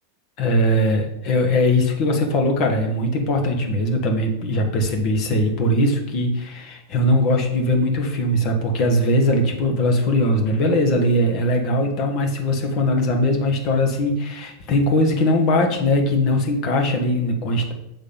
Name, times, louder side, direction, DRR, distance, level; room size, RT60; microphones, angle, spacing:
voice 1, 0.4-17.7, left 1 dB, 40° left, 3 dB, 1.3 m, -20 dB
7.2 x 3.5 x 5.6 m, 0.83 s
figure-of-eight pair, 90°, 0 cm